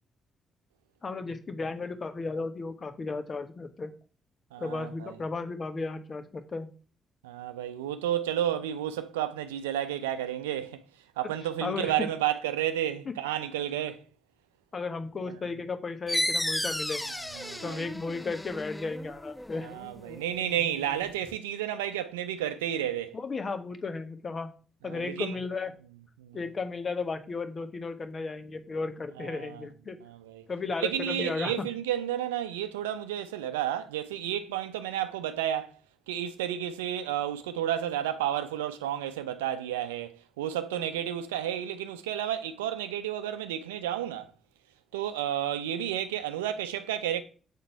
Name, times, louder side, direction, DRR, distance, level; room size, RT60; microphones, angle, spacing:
voice 1, 1.0-3.9 4.6-6.7 11.6-12.1 13.0-13.1 14.7-17.0 17.6-19.7 23.1-24.5 24.8-25.7 26.3-30.0 30.5-31.7 40.7-40.9, left 4 dB, 45° left, 1.2 m, -34 dB
voice 2, 4.5-5.1 7.2-10.8 11.2-14.0 15.3-15.4 17.3-17.9 19.6-23.2 24.9-25.4 26.2-26.4 29.2-29.7 30.0-30.4 30.8-35.7 36.1-44.3 44.9-47.2, right 11 dB, 90° right, 0.5 m, -31 dB
sound 1, 16.1-21.3, left 1 dB, 10° left, 0.4 m, -34 dB
7.3 x 4.1 x 4.5 m
hypercardioid pair, 45°, 0 cm